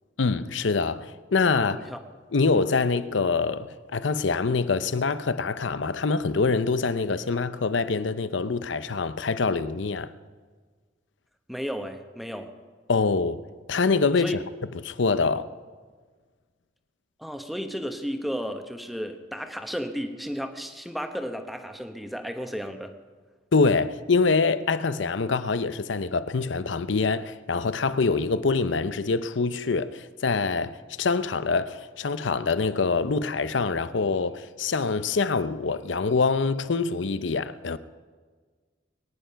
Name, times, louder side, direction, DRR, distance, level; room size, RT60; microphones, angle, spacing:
voice 1, 0.2-1.9 2.3-10.1 12.9-13.4 13.7-14.4 14.8-15.5 23.5-37.8, left 4 dB, 90° left, 0.7 m, -25 dB
voice 2, 11.5-12.5 14.2-14.4 17.2-22.9, equal, ahead, 1.1 m, -33 dB
23.0 x 10.5 x 5.7 m
head